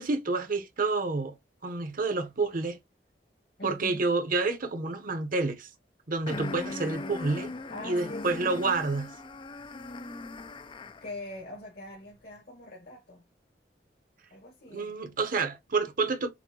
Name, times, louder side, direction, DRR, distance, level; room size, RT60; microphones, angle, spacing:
voice 1, 0.0-1.4 1.6-2.8 3.6-5.7 6.1-7.5 7.8-9.1 14.7-16.3, right 3 dB, 50° right, 0.8 m, -29 dB
voice 2, 3.6-4.1 7.7-8.4 11.0-13.2 14.3-15.0, left 1 dB, 60° left, 1.8 m, -43 dB
sound 1, 6.3-11.2, left 3 dB, 30° left, 0.4 m, -39 dB
6.1 x 2.6 x 2.8 m
head